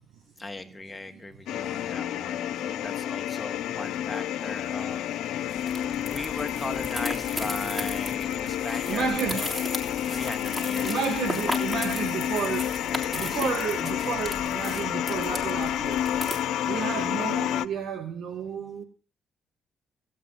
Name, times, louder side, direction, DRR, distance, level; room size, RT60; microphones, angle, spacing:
voice 1, 0.4-5.5 6.1-9.5 10.1-11.0 13.0-13.8, left 2 dB, 15° left, 7 dB, 1.5 m, -38 dB
sound 1, 1.5-17.6, left 11 dB, 80° left, 0.6 m, -30 dB
sound 2, 5.5-16.4, equal, 10° right, 3.3 m, -37 dB
voice 2, 8.9-9.4 10.8-12.7 13.1-16.0 16.6-18.8, right 6 dB, 75° right, 6 dB, 1.7 m, -31 dB
16.5 x 8.7 x 5.6 m, 0.35 s
cardioid pair, 90°, 0 cm